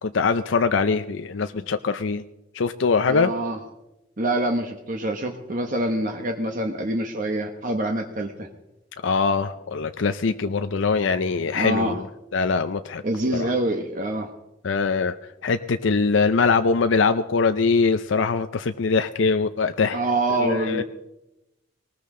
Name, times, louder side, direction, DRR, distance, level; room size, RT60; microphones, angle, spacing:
voice 1, 0.0-2.2 2.5-3.3 9.0-12.1 12.3-13.0 13.3-13.5 14.6-15.1 15.4-20.0 20.4-20.8, left 4 dB, 70° left, 9 dB, 0.5 m, -22 dB
voice 2, 3.1-3.6 4.2-8.5 11.5-12.0 13.0-14.3 19.9-20.8, right 1 dB, 40° right, 4 dB, 1.0 m, -25 dB
19.5 x 19.0 x 3.7 m, 0.95 s
head